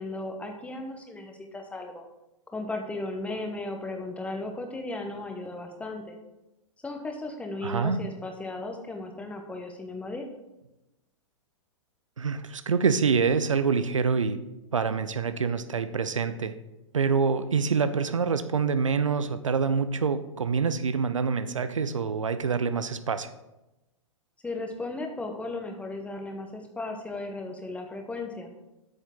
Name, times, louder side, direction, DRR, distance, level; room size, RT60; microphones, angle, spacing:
voice 1, 0.0-2.0 2.5-6.2 6.8-10.3 24.4-28.5, left 2 dB, 10° left, 4 dB, 1.0 m, -36 dB
voice 2, 7.6-8.0 12.2-14.4 14.7-16.5 16.9-23.3, right 5 dB, 75° right, 12 dB, 0.6 m, -26 dB
8.5 x 6.9 x 3.7 m, 0.96 s
figure-of-eight pair, 110°, 16 cm